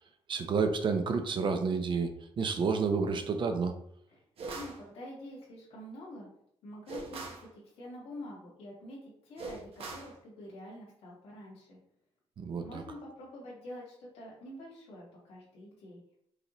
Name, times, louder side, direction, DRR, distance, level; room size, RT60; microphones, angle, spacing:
voice 1, 0.3-3.7 12.4-12.8, right 5 dB, 55° right, 7 dB, 0.7 m, -30 dB
sound 1, 4.4-4.8 6.9-7.5 9.4-10.1, right 3 dB, 70° right, 1.0 m, -41 dB
voice 2, 4.5-6.3 6.6-11.8 12.6-16.0, left 1 dB, 90° left, -5 dB, 1.6 m, -47 dB
4.8 x 3.3 x 3.0 m, 0.69 s
cardioid pair, 100°, 10 cm